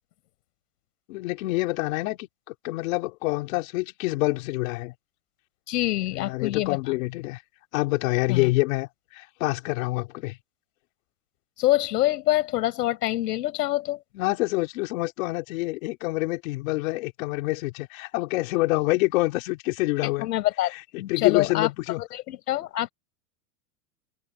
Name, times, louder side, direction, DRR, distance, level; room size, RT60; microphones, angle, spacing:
voice 1, 1.1-4.9 6.1-7.4 7.7-10.4 14.1-20.3 20.7-22.0, left 22 dB, 60° left, 3.8 m, -27 dB
voice 2, 5.7-6.8 8.3-8.5 11.6-14.0 20.0-21.7 22.0-22.9, left 15 dB, 85° left, 5.0 m, -26 dB
supercardioid pair, 160°, 46 cm